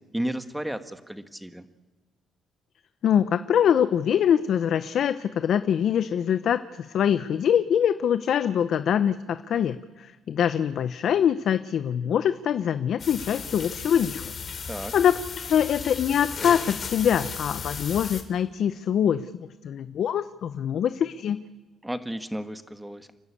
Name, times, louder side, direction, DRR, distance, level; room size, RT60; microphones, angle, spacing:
voice 1, 0.1-1.6 14.7-14.9 21.8-23.1, right 1 dB, 5° right, 9 dB, 1.6 m, -33 dB
voice 2, 3.0-14.3 14.9-21.4, left 9 dB, 65° left, 12 dB, 0.7 m, -24 dB
sound 1, 13.0-18.2, left 5 dB, 50° left, 2.8 m, -35 dB
30.0 x 12.5 x 8.5 m, 1.3 s
cardioid pair, 90°, 0 cm